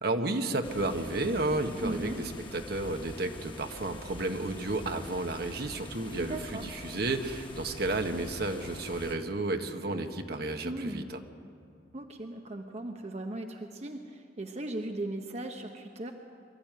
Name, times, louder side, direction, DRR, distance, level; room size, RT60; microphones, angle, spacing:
voice 1, 0.0-11.2, right 2 dB, 60° right, 5 dB, 1.4 m, -32 dB
sound 1, 0.6-9.1, left 2 dB, 30° left, 1.4 m, -46 dB
voice 2, 1.8-2.2 6.2-6.6 10.6-11.0 11.9-16.1, right 1 dB, 40° right, 4 dB, 1.0 m, -37 dB
24.0 x 13.5 x 9.2 m, 2.4 s
head